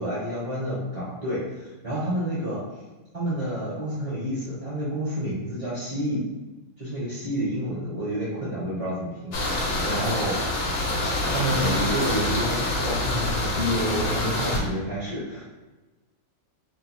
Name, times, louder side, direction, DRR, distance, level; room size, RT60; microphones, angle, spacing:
voice 1, 0.0-2.6 3.1-6.2 6.8-10.4 11.3-15.4, equal, 25° right, -9 dB, 1.2 m, -29 dB
sound 1, 9.3-14.6, left 1 dB, 60° left, 1.0 m, -26 dB
2.7 x 2.6 x 4.2 m, 1.2 s
omnidirectional pair, 1.5 m